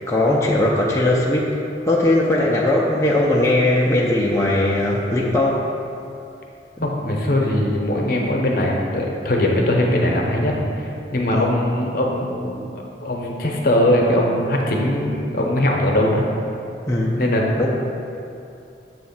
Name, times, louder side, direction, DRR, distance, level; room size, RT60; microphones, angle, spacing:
voice 1, 0.1-1.6 1.9-5.7 11.3-11.5 16.9-17.3 17.6-17.7, left 1 dB, 15° left, -5 dB, 0.5 m, -19 dB
voice 2, 6.8-16.3 17.2-17.5, left 1 dB, 50° left, -1 dB, 0.8 m, -21 dB
7.2 x 3.1 x 5.9 m, 2.7 s
head